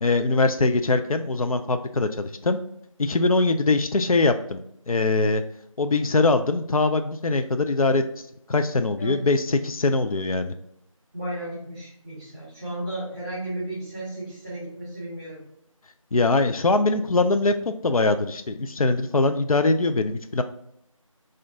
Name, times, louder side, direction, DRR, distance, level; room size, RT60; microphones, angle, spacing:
voice 1, 0.0-2.6 3.0-4.6 4.9-5.4 5.8-8.0 8.5-10.5 16.1-20.4, left 3 dB, 80° left, 8 dB, 0.4 m, -22 dB
voice 2, 11.1-15.4, right 1 dB, 15° right, -11 dB, 1.4 m, -34 dB
4.2 x 2.5 x 3.6 m, 0.74 s
figure-of-eight pair, 175°, 18 cm